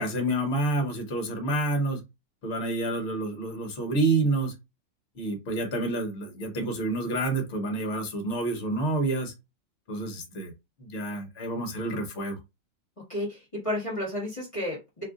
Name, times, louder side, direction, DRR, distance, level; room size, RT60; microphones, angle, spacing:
voice 1, 0.0-2.0 2.4-4.5 5.2-9.3 9.9-10.5 10.8-12.4, right 2 dB, 45° left, 3 dB, 1.1 m, -28 dB
voice 2, 13.1-15.0, left 1 dB, 20° left, -4 dB, 1.2 m, -32 dB
3.0 x 2.4 x 3.6 m, 0.24 s
omnidirectional pair, 2.0 m